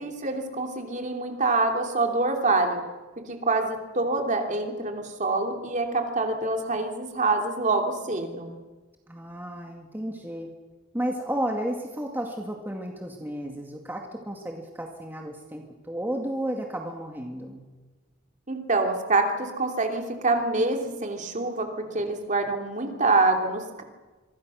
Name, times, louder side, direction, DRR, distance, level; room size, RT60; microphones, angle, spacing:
voice 1, 0.0-2.8 3.2-8.5 18.5-23.8, right 3 dB, 35° right, 3 dB, 3.0 m, -26 dB
voice 2, 9.1-10.5 10.9-17.7, right 1 dB, 10° right, 1 dB, 2.1 m, -33 dB
26.5 x 24.5 x 6.4 m, 1.3 s
head